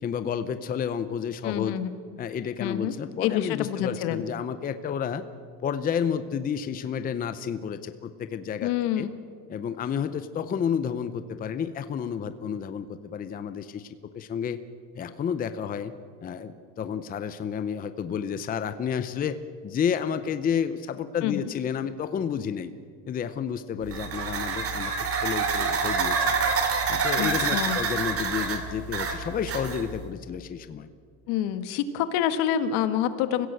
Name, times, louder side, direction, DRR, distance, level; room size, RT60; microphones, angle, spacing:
voice 1, 0.0-1.8 2.2-5.2 5.6-9.1 9.5-14.6 15.0-15.9 16.2-19.4 19.6-22.7 23.1-24.9 25.2-26.3 26.9-30.9, left 7 dB, 20° left, 11 dB, 0.7 m, -31 dB
voice 2, 1.4-1.9 2.6-2.9 3.2-4.2 8.6-9.1 21.2-21.4 27.2-27.8 31.3-33.5, left 10 dB, 70° left, 11 dB, 1.7 m, -27 dB
sound 1, 23.9-30.0, right 5 dB, 35° right, 2.5 m, -27 dB
25.5 x 16.0 x 7.9 m, 2.2 s
cardioid pair, 145°, 40 cm